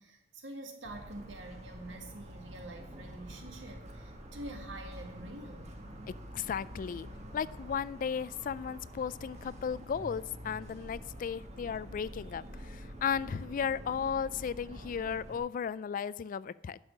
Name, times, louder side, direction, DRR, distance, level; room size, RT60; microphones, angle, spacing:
voice 1, 0.0-5.7, right 2 dB, 85° right, 1.9 m, -46 dB
Motor vehicle (road) / Siren, 0.8-15.4, equal, 35° right, 1.4 m, -47 dB
voice 2, 6.1-7.1 7.3-16.8, left 7 dB, 45° left, 0.3 m, -35 dB
11.0 x 6.3 x 6.4 m
head